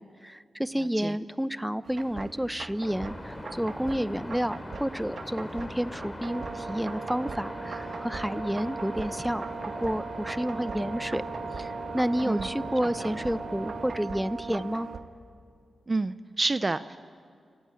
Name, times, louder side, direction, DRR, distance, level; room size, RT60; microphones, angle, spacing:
voice 1, 0.0-9.5 9.8-11.2 11.6-14.9, equal, 5° right, 15 dB, 0.9 m, -30 dB
sound 1, 1.8-15.0, right 4 dB, 65° right, 1.6 m, -43 dB
sound 2, 2.8-14.0, left 1 dB, 25° left, 3.3 m, -41 dB
Brass instrument, 6.2-15.1, right 5 dB, 85° right, 1.4 m, -39 dB
voice 2, 15.9-17.0, right 3 dB, 40° right, 12 dB, 0.8 m, -28 dB
29.5 x 15.5 x 9.1 m, 2.2 s
supercardioid pair, 40°, 0 cm